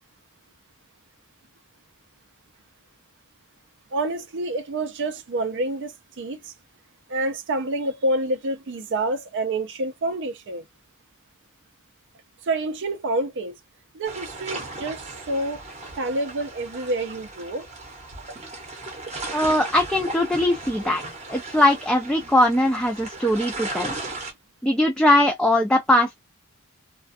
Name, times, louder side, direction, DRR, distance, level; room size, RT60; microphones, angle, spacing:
voice 1, 3.9-6.5 7.1-10.6 12.5-13.5 13.9-15.6 16.0-17.7, right 2 dB, 55° right, 0.5 m, -28 dB
sound 1, 14.0-24.3, right 2 dB, 30° right, 0.8 m, -36 dB
voice 2, 19.3-21.0 21.3-23.9 24.6-26.2, left 1 dB, 5° left, 0.3 m, -20 dB
2.3 x 2.2 x 2.5 m
head